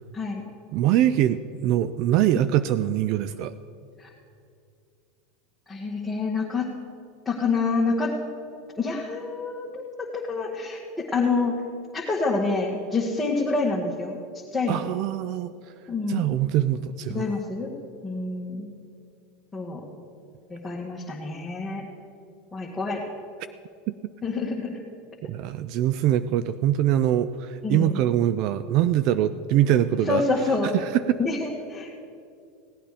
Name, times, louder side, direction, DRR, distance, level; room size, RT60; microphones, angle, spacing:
voice 1, 0.7-3.5 14.7-15.5 16.1-17.3 23.9-24.0 25.2-30.2 30.7-31.2, right 12 dB, 55° right, 14 dB, 0.4 m, -23 dB
voice 2, 5.7-6.7 7.2-8.1 8.8-10.8 11.1-11.5 11.9-14.2 14.5-14.8 15.9-16.3 17.1-17.8 18.0-18.7 19.5-19.8 20.5-21.8 22.5-23.0 24.2-24.8 27.6-28.0 30.0-30.7 31.2-32.0, left 3 dB, 10° left, -5 dB, 1.7 m, -27 dB
17.0 x 8.8 x 5.0 m, 2.5 s
hypercardioid pair, 110°, 0 cm